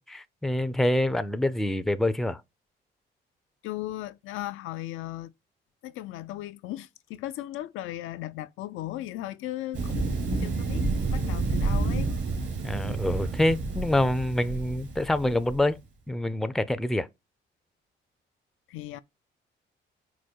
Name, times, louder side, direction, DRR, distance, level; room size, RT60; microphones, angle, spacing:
voice 1, 0.0-2.4 12.6-15.8 16.1-17.1, left 1 dB, ahead, 0.4 m, -26 dB
voice 2, 3.6-5.3 5.8-12.1 18.7-19.0, left 14 dB, 90° left, 0.4 m, -37 dB
Thunder, 9.7-15.6, right 3 dB, 65° right, 2.1 m, -29 dB
4.9 x 2.2 x 4.3 m
cardioid pair, 90°, 20 cm